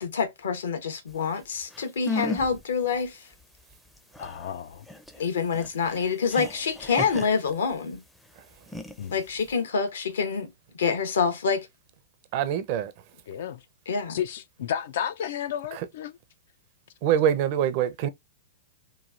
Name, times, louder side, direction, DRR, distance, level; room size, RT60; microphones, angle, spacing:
voice 1, 0.0-3.2 5.2-8.0 9.1-10.5 10.8-11.7 13.9-14.2, left 5 dB, 85° left, 1.0 m, -27 dB
sound 1, 1.4-1.5 1.7-2.6 2.9-3.0 3.4-8.0 8.5-9.6, left 2 dB, 5° left, 0.4 m, -35 dB
voice 2, 4.2-4.8 9.0-9.1 13.3-13.6 14.1-16.1, left 9 dB, 65° left, 0.3 m, -32 dB
voice 3, 12.3-12.9 15.7-15.9 17.0-18.1, right 10 dB, 50° right, 0.5 m, -24 dB
3.1 x 2.3 x 2.5 m
hypercardioid pair, 130°, 0 cm